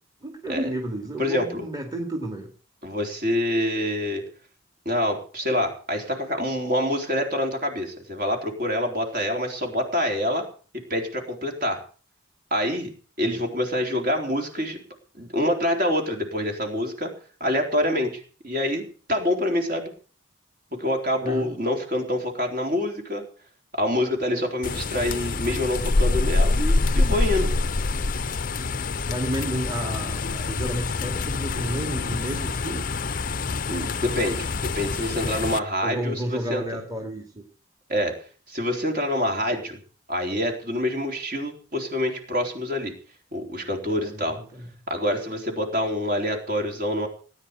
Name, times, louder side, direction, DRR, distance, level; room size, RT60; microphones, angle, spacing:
voice 1, 0.2-2.5 13.2-13.4 21.2-21.5 29.1-32.9 35.8-37.4 43.9-44.7, right 1 dB, 20° right, 1 dB, 2.4 m, -31 dB
voice 2, 1.2-1.6 2.8-4.2 4.9-10.5 10.9-11.8 12.5-12.9 13.2-14.8 15.1-17.1 17.4-19.9 20.8-23.2 23.8-27.5 33.7-34.5 34.7-36.6 37.9-38.2 38.5-39.8 40.1-42.9 43.3-44.4 44.9-47.1, left 1 dB, 45° right, 3 dB, 3.9 m, -26 dB
sound 1, 24.6-35.6, left 3 dB, 40° left, 0.6 m, -26 dB
18.5 x 10.0 x 6.7 m, 0.41 s
head